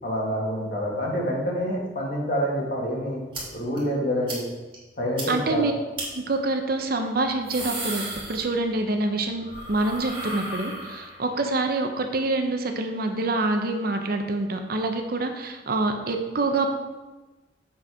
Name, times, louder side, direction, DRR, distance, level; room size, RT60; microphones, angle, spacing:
voice 1, 0.0-3.2 3.5-4.4 5.0-5.6, equal, 50° left, -3 dB, 1.7 m, -27 dB
sound 1, 3.3-3.4 3.8-3.9 4.3-4.4 4.7-4.8 5.2-5.3 5.9-6.1 7.2-8.9 9.2-11.3, right 2 dB, 30° right, 1.8 m, -34 dB
voice 2, 5.3-5.7 6.1-16.7, right 2 dB, 50° right, 5 dB, 0.7 m, -26 dB
7.5 x 4.4 x 4.8 m, 1.2 s
head